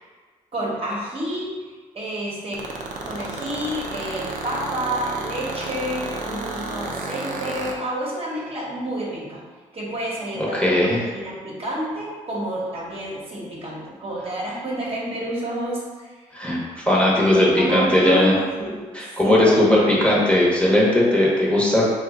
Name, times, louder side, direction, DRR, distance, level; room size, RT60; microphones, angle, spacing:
voice 1, 0.5-1.6 1.9-2.7 3.0-9.4 9.7-15.8 17.6-18.9 19.2-20.1, right 1 dB, 40° right, -5 dB, 1.0 m, -29 dB
sound 1, 2.5-7.7, right 3 dB, 60° right, 0.5 m, -31 dB
voice 2, 10.4-11.0 16.3-16.6 16.9-18.3 18.9-21.9, left 1 dB, 5° left, -6 dB, 0.9 m, -18 dB
2.7 x 2.3 x 3.6 m, 1.5 s
supercardioid pair, 60°, 15 cm